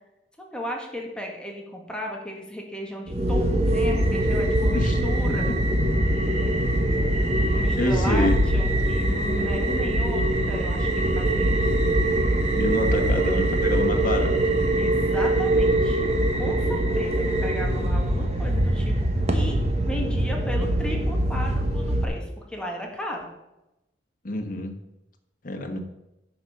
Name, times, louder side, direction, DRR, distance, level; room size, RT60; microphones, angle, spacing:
voice 1, 0.4-5.6 7.1-7.2 7.5-11.8 14.8-16.1 16.3-19.1 19.3-23.3, equal, 5° left, 0 dB, 1.7 m, -35 dB
sound 1, 3.1-22.0, right 1 dB, 40° right, 1.2 m, -23 dB
voice 2, 7.8-8.4 12.5-14.5 24.2-24.7 25.4-25.8, left 1 dB, 50° left, 5 dB, 1.4 m, -27 dB
10.0 x 5.4 x 6.5 m, 0.94 s
head